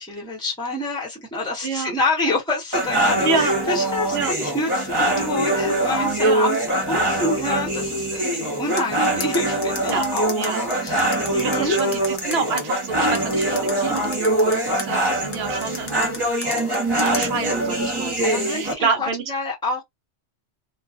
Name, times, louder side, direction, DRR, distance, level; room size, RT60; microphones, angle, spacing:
voice 1, 0.0-11.7 18.2-19.8, left 2 dB, 5° left, 1.0 m, -27 dB
voice 2, 1.6-1.9 3.2-3.5 4.1-4.3 6.2-6.5 9.9-10.1 10.4-10.6 11.4-16.3 17.0-19.2, right 4 dB, 65° right, 0.9 m, -28 dB
sound 1, 2.7-18.7, right 1 dB, 20° right, 1.0 m, -23 dB
sound 2, 8.8-12.6 13.1-14.9 15.3-17.3, left 4 dB, 40° left, 0.6 m, -32 dB
2.5 x 2.4 x 2.4 m
omnidirectional pair, 1.2 m